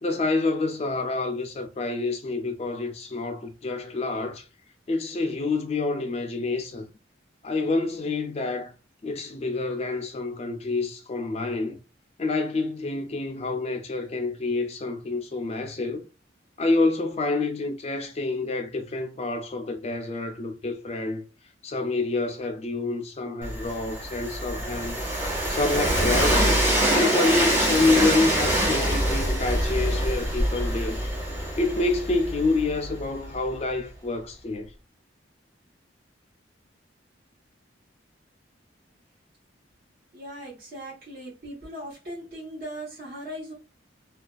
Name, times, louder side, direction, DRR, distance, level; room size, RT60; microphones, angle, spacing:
voice 1, 0.0-4.5 4.9-6.9 7.4-8.7 9.0-11.8 12.2-16.0 16.6-21.2 21.6-25.0 25.5-26.6 26.9-31.0 31.6-34.7, left 3 dB, 35° left, 0.3 m, -27 dB
Train, 23.4-33.3, right 1 dB, 15° right, 0.8 m, -25 dB
voice 2, 40.1-43.5, equal, 50° right, 1.1 m, -39 dB
2.4 x 2.3 x 2.3 m
head